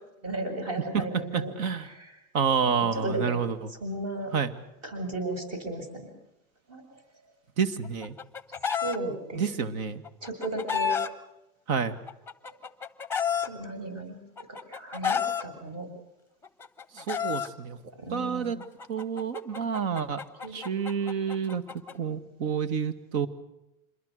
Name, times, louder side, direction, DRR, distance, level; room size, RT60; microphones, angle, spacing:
voice 1, 0.2-1.5 1.9-2.1 2.6-3.4 3.8-4.3 4.8-5.9 6.7-6.8 8.8-9.7 10.2-11.0 13.4-14.2 14.7-15.9 18.0-18.5 20.4-20.6, right 2 dB, 35° right, 6 dB, 7.6 m, -34 dB
voice 2, 0.9-1.9 2.3-3.7 4.3-4.5 7.6-8.2 9.3-10.0 11.7-12.0 16.9-17.8 18.1-18.6 18.9-20.2 20.5-21.6 21.9-23.3, right 6 dB, 70° right, 12 dB, 2.1 m, -29 dB
Chicken rooster, 7.8-9.0 10.0-11.1 12.1-13.5 14.4-15.4 16.4-17.5 18.6-21.9, left 7 dB, 5° left, 1.2 m, -30 dB
26.5 x 22.0 x 6.6 m, 0.92 s
hypercardioid pair, 120°, 43 cm